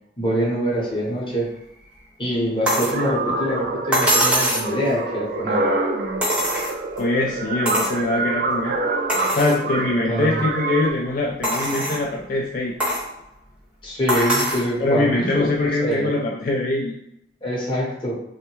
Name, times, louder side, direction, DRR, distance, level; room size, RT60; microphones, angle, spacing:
voice 1, 0.2-1.5 2.2-5.7 10.1-10.4 13.8-16.2 17.4-18.1, equal, 30° left, -4 dB, 0.9 m, -24 dB
sound 1, 2.6-10.9, right 3 dB, 50° right, 0.4 m, -26 dB
sound 2, 2.7-3.0 3.9-4.7 6.2-7.0 7.7-8.0 8.5-8.6 9.1-9.6 10.2-10.3 11.4-12.0 12.8-13.1 14.1-14.7 15.9-16.0, equal, 5° right, 0.6 m, -22 dB
voice 2, 7.0-8.8 9.4-12.7 14.8-16.9, left 2 dB, 50° left, -1 dB, 0.3 m, -23 dB
3.1 x 2.1 x 3.0 m, 0.80 s
head